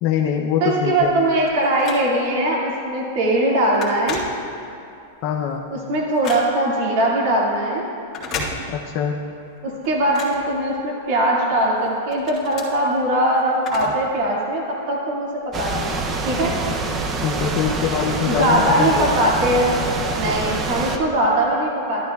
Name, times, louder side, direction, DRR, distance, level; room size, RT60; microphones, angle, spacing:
voice 1, 0.0-1.2 5.2-5.6 8.7-9.2 17.2-19.2, left 8 dB, 40° left, 0 dB, 0.5 m, -23 dB
voice 2, 0.6-4.2 5.9-7.8 9.6-16.0 16.3-16.5 18.3-19.7 20.2-22.1, right 1 dB, 50° right, -3 dB, 2.1 m, -20 dB
Telephone, 1.0-2.4 2.9-3.1 3.4-4.9 5.3-6.8 8.0-9.1 9.4-11.2 11.6-14.2 14.4-14.5 15.4-15.5, left 3 dB, 25° left, 1.8 m, -34 dB
sound 1, 15.5-21.0, right 3 dB, 20° right, 0.6 m, -25 dB
12.5 x 11.0 x 2.3 m, 2.6 s
supercardioid pair, 160°, 0 cm